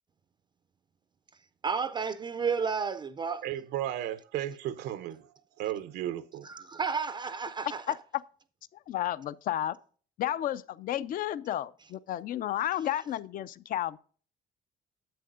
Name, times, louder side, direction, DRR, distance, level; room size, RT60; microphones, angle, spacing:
voice 1, 1.6-3.5 6.4-7.8, right 5 dB, 25° right, 0.4 m, -32 dB
voice 2, 3.4-5.3 5.6-6.5, right 12 dB, 85° right, 0.6 m, -34 dB
voice 3, 8.9-9.8 10.2-14.0, left 12 dB, 55° left, 0.5 m, -32 dB
10.0 x 7.7 x 2.5 m
cardioid pair, 110°, 17 cm